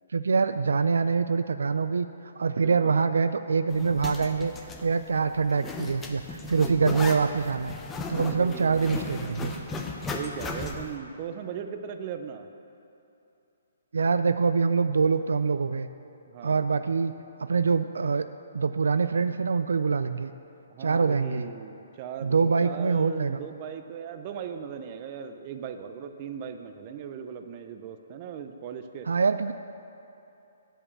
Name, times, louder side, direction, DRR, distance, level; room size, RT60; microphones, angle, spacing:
voice 1, 0.1-2.1 2.4-4.5 4.8-7.7 8.1-9.5 13.9-15.9 16.4-17.1 17.4-18.3 18.5-20.3 20.8-21.5 22.2-23.4 29.1-29.5, right 5 dB, 85° right, 11 dB, 0.3 m, -24 dB
voice 2, 2.6-3.0 6.8-7.4 8.3-9.1 10.1-12.5 16.3-16.6 20.7-29.1, right 7 dB, 35° right, 7 dB, 0.6 m, -38 dB
Zipper (clothing), 3.7-10.9, left 3 dB, 15° left, 0.6 m, -36 dB
8.5 x 5.5 x 6.9 m, 2.9 s
hypercardioid pair, 150°, 0 cm